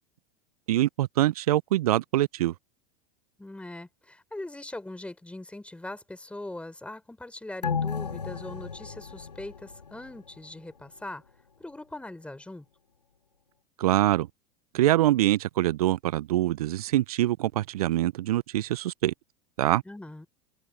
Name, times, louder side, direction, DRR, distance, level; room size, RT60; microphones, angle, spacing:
voice 1, 0.7-2.5 13.8-14.3 14.7-19.1 19.6-19.8, right 14 dB, 65° right, 0.9 m, -24 dB
voice 2, 3.4-11.2 11.6-12.6 19.8-20.3, left 2 dB, 5° left, 4.6 m, -41 dB
sound 1, 7.6-10.5 10.9-11.0, left 6 dB, 90° left, 1.1 m, -34 dB
open air
figure-of-eight pair, 85°, 20 cm